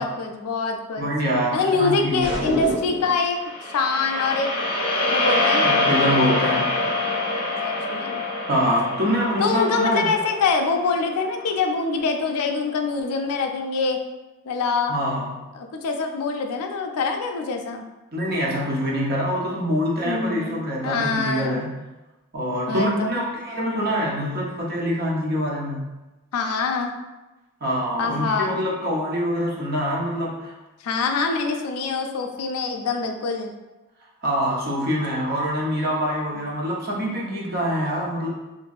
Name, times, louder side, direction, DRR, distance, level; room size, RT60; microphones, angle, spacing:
voice 1, 0.0-1.1 1.5-3.4 3.7-4.5 5.1-5.8 7.6-8.2 9.4-14.0 14.4-14.9 15.5-17.8 20.0-21.6 22.7-23.1 26.3-26.9 28.0-28.6 30.8-33.5, left 4 dB, 85° left, 4 dB, 0.4 m, -24 dB
voice 2, 1.0-2.5 5.6-6.9 8.5-10.1 14.9-15.5 18.1-21.7 22.3-25.9 27.6-30.5 34.2-38.3, equal, 45° right, -3 dB, 0.6 m, -25 dB
sound 1, 2.2-3.2, right 1 dB, 20° right, 1.0 m, -28 dB
sound 2, 3.4-11.7, left 2 dB, 20° left, 0.6 m, -25 dB
3.0 x 2.6 x 2.3 m, 1.1 s
head